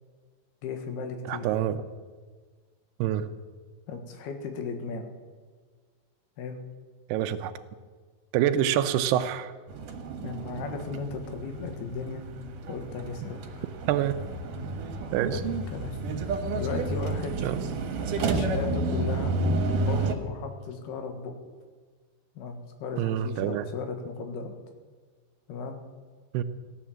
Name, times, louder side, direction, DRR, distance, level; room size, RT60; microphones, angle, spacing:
voice 1, 0.6-1.5 3.9-5.1 6.4-6.6 10.2-12.2 12.7-13.6 15.3-16.0 16.6-17.4 18.2-19.3 19.8-21.3 22.4-24.5 25.5-25.8, left 5 dB, 75° left, 5 dB, 3.5 m, -36 dB
voice 2, 1.3-1.8 3.0-3.3 7.1-7.5 8.3-9.5 13.9-14.2 15.1-15.4 17.4-17.6 23.0-23.7 26.3-26.4, right 11 dB, 85° right, 10 dB, 2.8 m, -26 dB
sound 1, 9.7-20.1, right 2 dB, 65° right, 2.6 m, -31 dB
16.0 x 10.5 x 7.4 m, 1.5 s
omnidirectional pair, 4.6 m